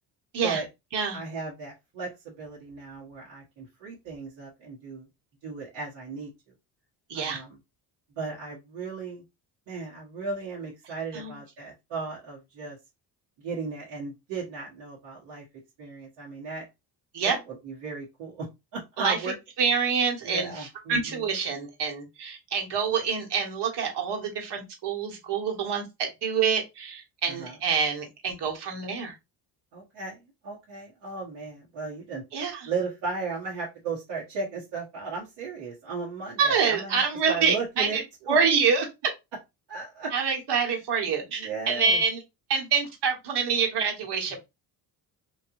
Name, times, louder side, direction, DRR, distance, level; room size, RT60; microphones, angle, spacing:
voice 1, 1.1-5.1 5.4-6.3 7.1-7.6 8.2-9.2 9.7-12.8 13.4-15.4 15.8-16.6 17.2-18.5 18.7-19.4 20.2-21.3 27.3-27.6 29.7-32.2 32.6-38.4 39.7-40.1 41.3-42.0, right 4 dB, 75° right, 1.4 m, -36 dB
voice 2, 7.1-7.4 11.1-11.4 17.1-17.4 19.0-19.3 19.6-29.1 32.3-32.7 36.4-38.0 38.3-38.9 40.1-42.2 42.5-44.4, right 5 dB, 60° right, 1.4 m, -26 dB
3.2 x 2.6 x 2.5 m
supercardioid pair, 70°, 46 cm